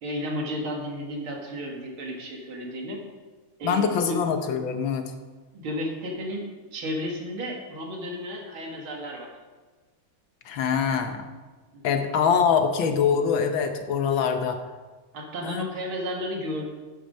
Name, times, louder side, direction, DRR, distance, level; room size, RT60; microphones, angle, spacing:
voice 1, 0.0-3.0 3.6-4.2 5.5-9.3 11.7-12.0 15.1-16.7, equal, 85° right, 0 dB, 2.7 m, -33 dB
voice 2, 3.6-5.1 10.4-11.2 11.8-14.6 15.4-15.7, left 6 dB, 70° left, 6 dB, 1.7 m, -24 dB
10.0 x 8.4 x 5.4 m, 1.3 s
omnidirectional pair, 2.2 m